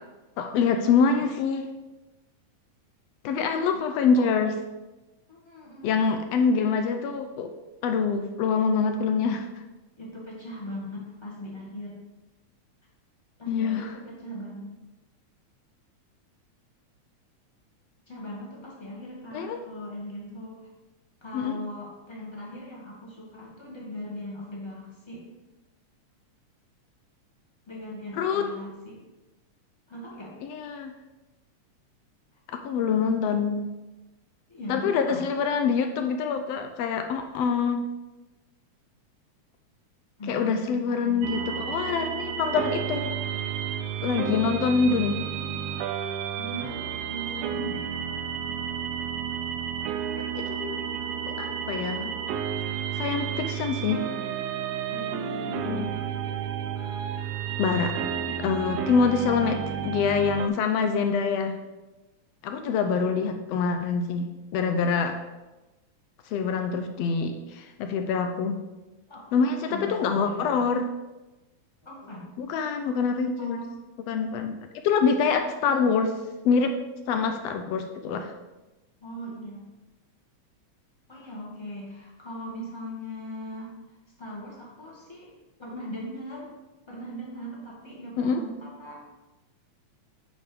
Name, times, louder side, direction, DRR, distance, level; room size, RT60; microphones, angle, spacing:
voice 1, 0.4-1.7 3.2-4.6 5.8-7.5 7.8-9.4 13.5-13.9 19.3-19.6 21.3-21.6 28.2-28.5 30.4-30.9 32.5-33.7 34.7-37.8 40.3-43.2 44.0-45.2 50.3-50.8 51.3-52.1 52.9-54.0 55.7-55.9 57.6-58.0 58.4-59.6 59.8-61.6 62.4-65.2 66.3-68.6 69.3-70.8 72.4-73.6 74.1-74.6 74.8-76.1 76.4-76.7 77.1-78.3 88.2-88.4, left 5 dB, 80° left, 6 dB, 1.5 m, -25 dB
voice 2, 5.3-6.0 10.0-12.0 13.4-14.7 18.1-20.7 21.2-25.3 27.7-29.0 29.9-30.4 34.5-35.3 40.2-41.7 46.4-47.9 54.9-56.1 69.1-70.6 71.8-72.3 72.8-73.0 73.4-73.7 79.0-79.7 81.1-83.7 84.2-85.3 85.6-86.5 86.9-89.0, equal, 10° left, -4 dB, 1.5 m, -39 dB
sound 1, 41.2-60.5, right 8 dB, 80° right, 1.5 m, -31 dB
8.3 x 5.2 x 5.0 m, 1.1 s
omnidirectional pair, 3.4 m